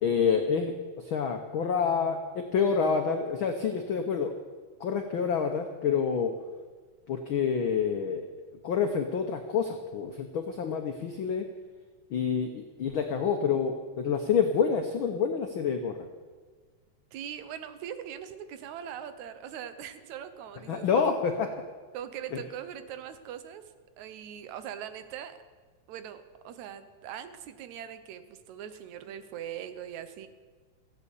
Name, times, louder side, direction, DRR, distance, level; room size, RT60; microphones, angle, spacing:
voice 1, 0.0-4.3 4.8-6.3 7.1-8.2 8.6-11.5 12.1-16.1 20.7-21.5 22.3-22.4, left 6 dB, 80° left, 5 dB, 1.1 m, -28 dB
voice 2, 17.1-21.1 21.9-23.6 24.0-25.4 25.9-30.3, right 9 dB, 75° right, 11 dB, 2.1 m, -41 dB
15.5 x 8.4 x 8.2 m, 1.4 s
omnidirectional pair, 3.5 m